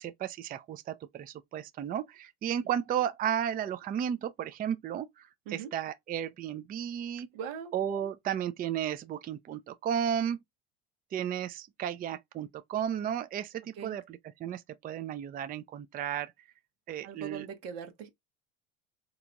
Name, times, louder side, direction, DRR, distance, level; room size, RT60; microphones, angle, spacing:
voice 1, 0.0-7.3 7.7-10.4 11.1-16.3 16.9-17.5, right 9 dB, 30° right, 0.5 m, -34 dB
voice 2, 7.3-7.7 13.8-14.0 17.0-18.1, right 7 dB, 85° right, 1.3 m, -40 dB
3.9 x 2.9 x 2.3 m
supercardioid pair, 100°, 29 cm